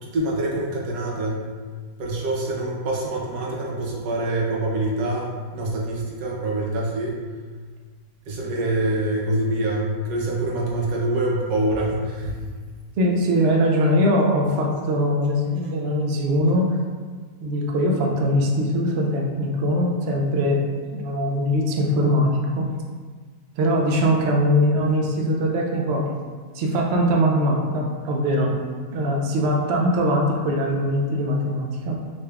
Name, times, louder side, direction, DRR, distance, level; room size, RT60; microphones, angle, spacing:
voice 1, 0.0-1.5 2.0-7.1 8.3-12.4, right 1 dB, 85° right, -3 dB, 1.3 m, -25 dB
voice 2, 13.0-16.7 17.4-20.7 20.9-22.7 23.6-26.1 26.5-28.5 28.9-32.1, equal, 70° right, 0 dB, 0.6 m, -21 dB
3.9 x 2.3 x 3.3 m, 1.5 s
omnidirectional pair, 1.6 m